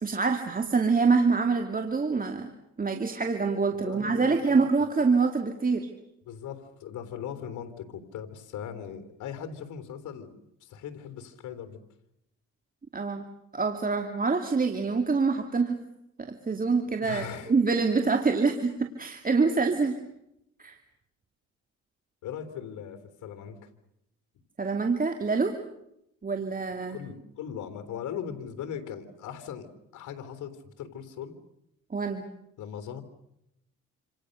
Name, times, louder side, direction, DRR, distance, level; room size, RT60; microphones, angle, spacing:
voice 1, 0.0-2.5 2.8-5.9 12.9-13.3 13.5-15.8 16.2-20.0 20.6-20.8 24.6-25.6 26.2-27.0 31.9-32.3, right 4 dB, 30° right, 6 dB, 2.5 m, -26 dB
voice 2, 3.7-4.6 5.0-5.1 6.2-11.8 17.0-17.5 19.7-19.9 22.2-23.7 26.9-29.7 29.9-31.3 32.6-33.0, left 8 dB, 80° left, 10 dB, 3.5 m, -39 dB
27.5 x 27.5 x 6.6 m, 0.81 s
cardioid pair, 90°, 30 cm